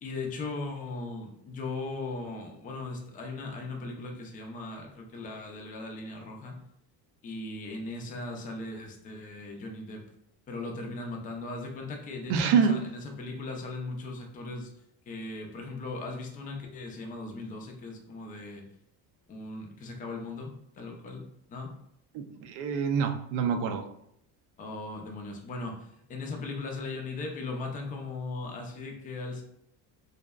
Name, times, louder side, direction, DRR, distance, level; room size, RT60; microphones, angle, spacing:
voice 1, 0.0-6.5 7.2-10.0 10.5-14.7 15.1-18.6 19.3-21.2 21.5-21.7 24.6-29.4, left 3 dB, 20° left, 1 dB, 0.3 m, -38 dB
voice 2, 12.3-12.8 22.1-23.8, right 6 dB, 80° right, 6 dB, 0.5 m, -26 dB
2.6 x 2.1 x 2.3 m, 0.74 s
cardioid pair, 140°, 41 cm